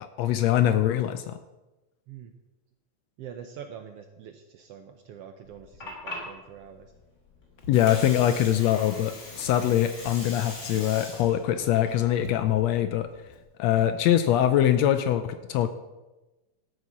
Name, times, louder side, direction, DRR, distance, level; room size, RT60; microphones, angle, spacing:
voice 1, 0.2-1.4 7.7-13.1 13.6-15.7, left 11 dB, 80° left, 10 dB, 1.6 m, -23 dB
voice 2, 3.2-6.9, right 8 dB, 75° right, 7 dB, 1.4 m, -44 dB
Water, 5.4-13.4, left 1 dB, 25° left, 2.6 m, -42 dB
Walk footsteps, 7.6-7.9 8.2-8.5 8.8-9.1 9.4-9.7 10.0-10.9 11.2-11.5 11.8-11.9 12.2-12.7 13.2-13.4 13.7-14.0, left 1 dB, 50° left, 1.5 m, -45 dB
12.5 x 8.0 x 6.1 m, 1.1 s
omnidirectional pair, 3.4 m